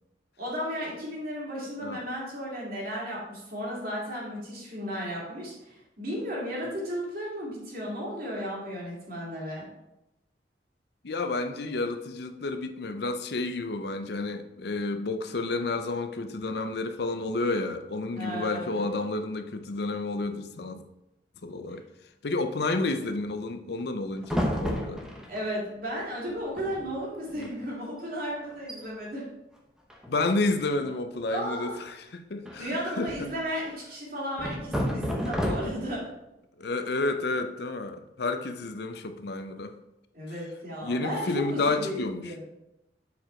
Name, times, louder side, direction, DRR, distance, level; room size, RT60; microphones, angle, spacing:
voice 1, 0.4-9.7 18.2-18.8 21.7-21.8 25.3-29.3 31.3-31.8 32.6-36.0 40.1-42.4, equal, 55° right, -4 dB, 2.6 m, -34 dB
voice 2, 11.0-20.8 21.4-21.8 22.2-25.0 27.3-27.5 30.1-32.7 33.0-33.3 36.6-39.7 40.8-42.4, left 2 dB, 65° left, 8 dB, 0.6 m, -30 dB
sound 1, 24.2-25.4 26.3-26.4 26.6-26.9 27.3-27.5 28.0-28.1 28.5-28.8 29.9-30.4 32.4-33.4 34.4-36.0, equal, 5° right, 0.9 m, -31 dB
7.2 x 4.6 x 4.4 m, 0.91 s
head